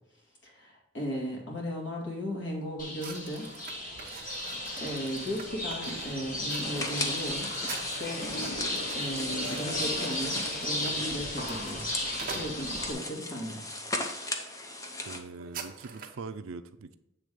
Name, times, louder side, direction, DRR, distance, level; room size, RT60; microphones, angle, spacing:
voice 1, 0.4-3.5 3.8-4.1 4.8-7.5 8.0-8.3 8.9-11.9 12.3-13.6, equal, 60° left, -1 dB, 2.0 m, -36 dB
sound 1, 2.8-12.9, left 1 dB, 40° left, 1.5 m, -35 dB
sound 2, 3.0-13.1 13.7-14.0 14.3-14.5 14.7-16.2, right 5 dB, 40° right, 0.8 m, -46 dB
sound 3, 6.6-15.2, left 2 dB, 15° left, 0.6 m, -38 dB
voice 2, 15.1-17.0, right 4 dB, 75° right, 11 dB, 0.5 m, -42 dB
7.9 x 3.4 x 5.1 m, 0.90 s
head